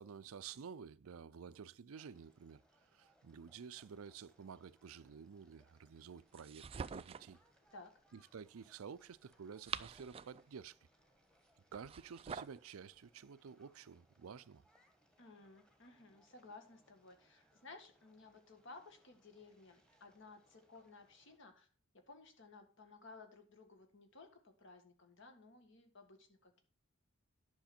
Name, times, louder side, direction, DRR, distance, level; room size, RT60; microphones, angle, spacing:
voice 1, 0.0-7.4 8.3-10.8 11.7-14.6, right 6 dB, 85° right, 0.5 m, -52 dB
sound 1, 1.9-21.4, equal, 5° left, 1.4 m, -74 dB
sound 2, 6.3-7.4 9.3-10.5 11.7-12.6, right 6 dB, 25° right, 0.3 m, -46 dB
voice 2, 15.2-21.7 22.1-26.6, left 3 dB, 60° left, 1.8 m, -57 dB
10.5 x 6.0 x 4.4 m
head